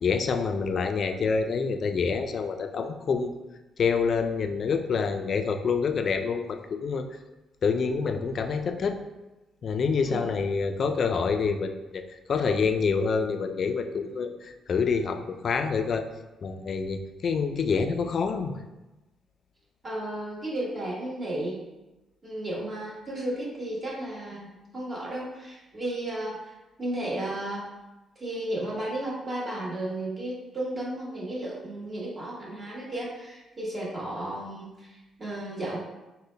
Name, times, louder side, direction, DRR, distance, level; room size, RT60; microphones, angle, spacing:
voice 1, 0.0-3.3 3.8-7.0 7.6-9.0 9.6-12.0 12.3-16.0 16.4-18.6, left 5 dB, 55° left, 7 dB, 0.3 m, -27 dB
voice 2, 19.8-21.6 22.2-26.5 26.8-27.6 28.2-35.8, right 1 dB, 30° right, -5 dB, 1.3 m, -33 dB
3.8 x 2.1 x 3.2 m, 1.0 s
cardioid pair, 80°, 0 cm